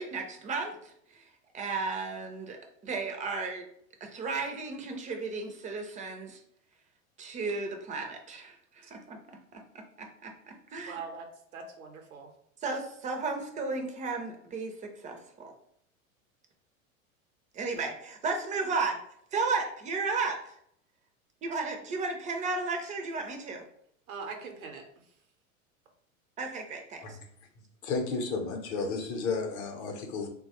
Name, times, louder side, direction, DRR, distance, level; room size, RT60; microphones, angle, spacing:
voice 1, 0.0-2.6 2.8-3.7 4.0-6.4 7.2-11.0 12.6-15.5 17.5-19.0 19.3-20.5 21.4-23.6 26.4-27.2, right 4 dB, 20° right, 4 dB, 0.4 m, -34 dB
voice 2, 10.9-11.3 11.5-12.3 24.1-25.1, right 5 dB, 85° right, 4 dB, 0.7 m, -42 dB
voice 3, 27.8-30.3, left 4 dB, 45° left, 4 dB, 0.7 m, -32 dB
3.0 x 2.2 x 2.8 m, 0.68 s
hypercardioid pair, 95°, 41 cm